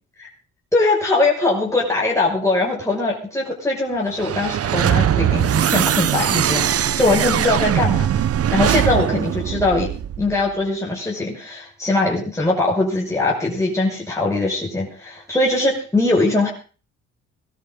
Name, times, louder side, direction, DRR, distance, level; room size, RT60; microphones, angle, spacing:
voice 1, 0.7-8.1 8.5-9.9 10.2-16.5, left 2 dB, 10° left, -3 dB, 5.7 m, -21 dB
sound 1, 4.1-10.4, right 10 dB, 50° right, 0.9 m, -20 dB
20.5 x 13.0 x 3.8 m, 0.38 s
cardioid pair, 90°, 30 cm